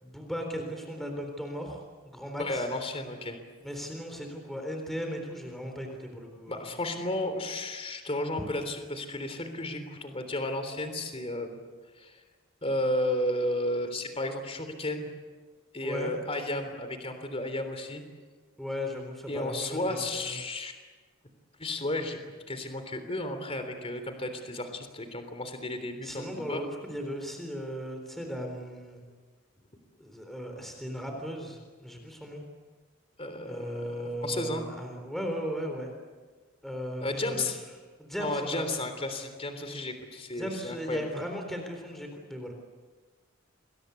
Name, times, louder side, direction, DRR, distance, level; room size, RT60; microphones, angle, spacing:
voice 1, 0.0-2.7 3.6-6.6 15.8-16.1 18.6-20.3 26.0-29.0 30.0-32.4 33.5-35.9 36.6-37.5 38.0-38.7 40.4-42.5, equal, ahead, 3 dB, 3.8 m, -37 dB
voice 2, 2.4-3.4 6.5-11.6 11.9-12.2 12.6-15.1 15.7-18.0 19.3-20.7 21.6-22.2 22.5-26.6 33.2-34.6 37.0-37.6 38.2-41.0, left 1 dB, 30° left, 8 dB, 3.4 m, -33 dB
29.5 x 22.0 x 8.3 m, 1.4 s
head